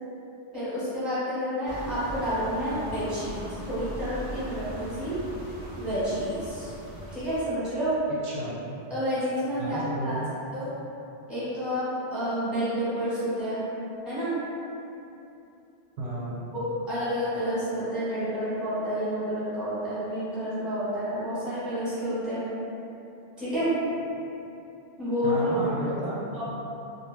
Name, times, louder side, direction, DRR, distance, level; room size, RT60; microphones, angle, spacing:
voice 1, 0.5-5.2 5.8-6.7 7.1-7.9 8.9-10.2 10.5-10.7 11.3-11.8 12.1-13.6 14.0-14.3 16.5-22.4 23.4-23.7 25.0-25.9 26.3-26.5, equal, ahead, -12 dB, 0.9 m, -29 dB
sound 1, 1.7-7.4, equal, 20° right, 0.5 m, -39 dB
voice 2, 8.2-8.6 9.6-10.3 16.0-16.3 25.2-26.2 26.5-26.6, right 1 dB, 75° right, -7 dB, 0.8 m, -32 dB
2.6 x 2.0 x 3.2 m, 2.8 s
omnidirectional pair, 1.1 m